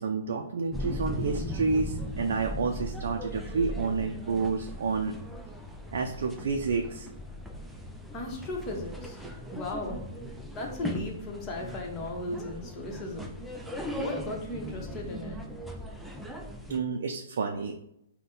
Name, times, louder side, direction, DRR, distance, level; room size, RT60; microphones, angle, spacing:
voice 1, 0.0-5.2 5.9-7.1 13.8-13.9 16.7-17.8, right 4 dB, 65° right, 4 dB, 0.4 m, -30 dB
sound 1, 0.7-16.8, left 1 dB, ahead, 0.4 m, -38 dB
voice 2, 8.1-9.2 9.5-10.1 10.5-13.4 14.0-15.4, left 1 dB, 25° left, 0 dB, 1.0 m, -36 dB
4.0 x 2.2 x 3.8 m, 0.80 s
hypercardioid pair, 140°, 0 cm